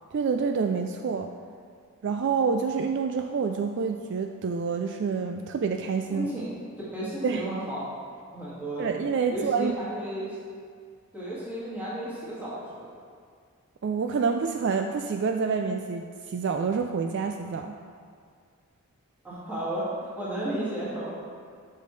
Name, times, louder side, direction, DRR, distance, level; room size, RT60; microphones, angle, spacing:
voice 1, 0.1-1.3 2.0-6.3 7.2-7.4 8.8-9.8 13.8-17.8, right 5 dB, 50° right, 5 dB, 0.3 m, -27 dB
voice 2, 6.1-6.5 6.8-7.8 8.3-8.9 9.3-10.4 11.1-12.9 19.2-21.1, right 1 dB, 5° right, -10 dB, 2.1 m, -33 dB
12.5 x 5.4 x 3.2 m, 2.1 s
head